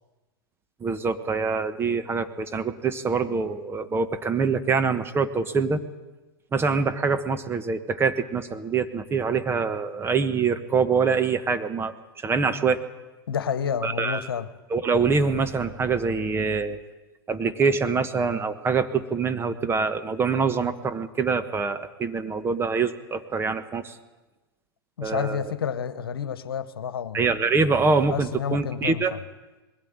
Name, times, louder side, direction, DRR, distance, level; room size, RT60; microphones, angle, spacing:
voice 1, 0.8-5.8 6.5-12.8 13.8-14.3 14.7-16.8 17.3-24.0 25.0-25.5 27.1-29.2, right 5 dB, 20° right, 9 dB, 1.4 m, -25 dB
voice 2, 13.3-14.5 25.0-27.2 28.1-29.0, left 7 dB, 75° left, 13 dB, 1.3 m, -29 dB
21.0 x 16.0 x 8.9 m, 1.1 s
hypercardioid pair, 105°, 13 cm